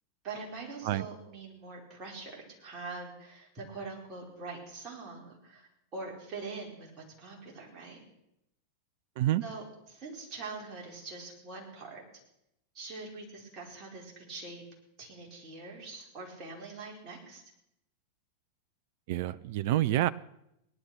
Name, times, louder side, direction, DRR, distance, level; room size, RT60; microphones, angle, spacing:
voice 1, 0.2-8.0 9.4-12.0 12.7-14.6 15.0-17.4, right 3 dB, 35° right, -1 dB, 4.9 m, -43 dB
voice 2, 19.1-20.1, right 14 dB, 50° right, 16 dB, 0.5 m, -27 dB
18.5 x 11.5 x 6.2 m, 0.81 s
figure-of-eight pair, 90°, 0 cm